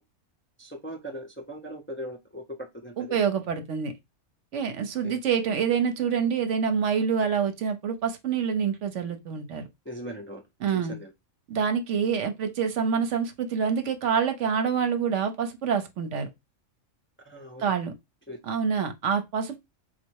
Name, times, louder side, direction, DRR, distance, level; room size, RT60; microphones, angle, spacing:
voice 1, 0.6-3.2 5.0-5.2 9.8-10.4 10.7-11.1 17.2-17.6 18.3-18.4, equal, 15° left, 0.5 m, -39 dB
voice 2, 3.0-3.9 4.5-9.7 10.6-11.0 11.5-16.3 17.6-17.9 18.4-19.6, right 6 dB, 70° right, 1.0 m, -26 dB
4.0 x 2.4 x 4.5 m
omnidirectional pair, 1.3 m